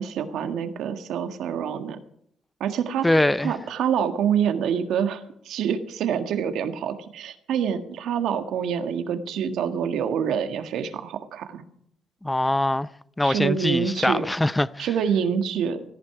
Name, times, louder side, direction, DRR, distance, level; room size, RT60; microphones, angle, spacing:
voice 1, 0.0-2.0 2.6-3.1 3.4-11.6 13.2-14.3 14.8-15.8, right 8 dB, 80° right, 1.6 m, -26 dB
voice 2, 3.0-3.5 12.2-12.9 13.2-14.9, left 1 dB, 10° left, 0.5 m, -23 dB
17.0 x 14.0 x 4.8 m
cardioid pair, 90°, 0 cm